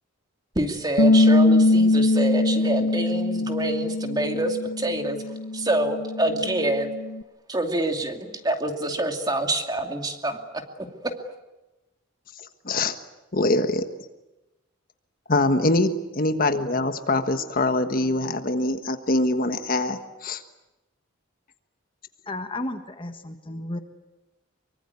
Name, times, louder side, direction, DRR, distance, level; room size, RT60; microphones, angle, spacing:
voice 1, 0.6-5.2 5.5-6.9 7.5-10.4 11.0-11.1, right 1 dB, 20° right, 4 dB, 2.6 m, -26 dB
Bass guitar, 1.0-7.2, left 2 dB, 80° left, 0.9 m, -22 dB
voice 2, 12.4-12.9 13.3-13.9 15.3-20.4, left 2 dB, 45° left, 8 dB, 1.4 m, -24 dB
voice 3, 22.2-23.8, left 1 dB, 25° left, 6 dB, 1.5 m, -33 dB
24.5 x 24.0 x 9.6 m, 1.0 s
head